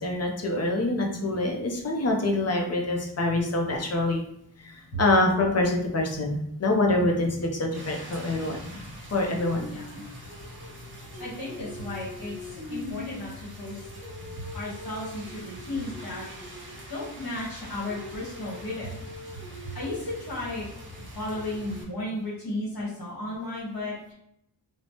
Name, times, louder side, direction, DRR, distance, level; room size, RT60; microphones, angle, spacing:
voice 1, 0.0-4.2 4.6-8.8 9.1-9.7, left 2 dB, 40° left, 1 dB, 0.5 m, -25 dB
Rain, 7.7-21.8, left 1 dB, 30° right, 0.8 m, -41 dB
voice 2, 9.7-10.0 11.2-13.9 14.2-19.0 19.3-20.7 21.1-24.1, left 1 dB, 60° left, -8 dB, 1.2 m, -35 dB
3.1 x 2.0 x 2.8 m, 0.77 s
wide cardioid pair, 115°, 41 cm